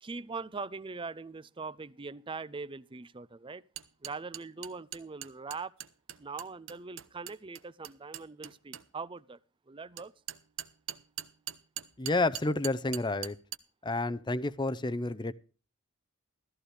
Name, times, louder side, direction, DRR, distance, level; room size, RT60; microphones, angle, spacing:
voice 1, 0.0-3.6 4.0-5.7 6.2-9.4 9.7-10.1, right 4 dB, 25° right, 0.5 m, -41 dB
sound 1, 3.8-8.8 10.0-13.6, right 11 dB, 60° right, 0.9 m, -41 dB
voice 2, 12.0-13.4 13.8-15.3, left 2 dB, 20° left, 0.6 m, -30 dB
14.5 x 14.0 x 3.3 m
head